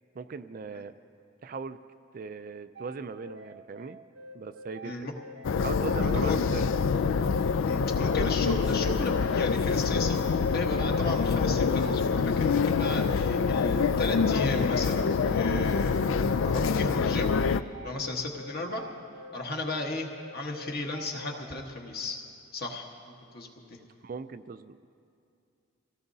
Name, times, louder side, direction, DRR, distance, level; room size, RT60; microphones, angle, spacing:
voice 1, 0.2-0.9 1.4-1.8 2.1-4.0 4.3-5.1 5.6-6.8 24.0-24.9, right 5 dB, 40° right, 11 dB, 0.3 m, -39 dB
sound 1, 2.7-21.6, right 1 dB, 60° right, 0.8 m, -46 dB
sound 2, 5.4-17.6, left 5 dB, 65° left, 0.3 m, -26 dB
voice 2, 6.0-6.4 7.6-17.3 17.8-18.8 19.3-22.2 22.5-22.9 23.3-23.8, left 2 dB, 45° left, 1 dB, 1.4 m, -34 dB
25.0 x 17.0 x 2.7 m, 2.5 s
head